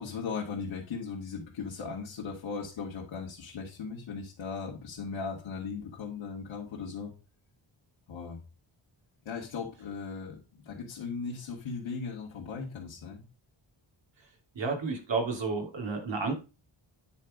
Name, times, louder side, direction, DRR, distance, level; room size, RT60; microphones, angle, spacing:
voice 1, 0.0-7.1 8.1-8.4 9.3-13.2, left 5 dB, 80° left, -3 dB, 2.1 m, -38 dB
voice 2, 14.5-16.3, right 4 dB, 70° right, 2 dB, 3.2 m, -31 dB
9.8 x 4.4 x 5.2 m, 0.31 s
wide cardioid pair, 145°, 46 cm